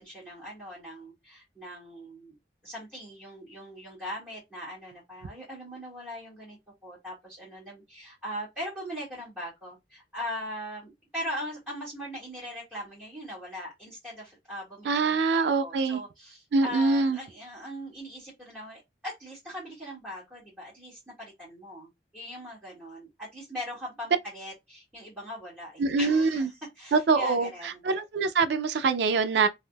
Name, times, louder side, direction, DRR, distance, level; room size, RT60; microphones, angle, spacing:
voice 1, 0.0-2.3 2.6-27.8, equal, 10° right, 1.8 m, -40 dB
voice 2, 14.9-16.0 16.5-17.2 25.8-26.5 26.9-29.5, right 4 dB, 80° right, 0.4 m, -24 dB
3.4 x 2.6 x 2.3 m
head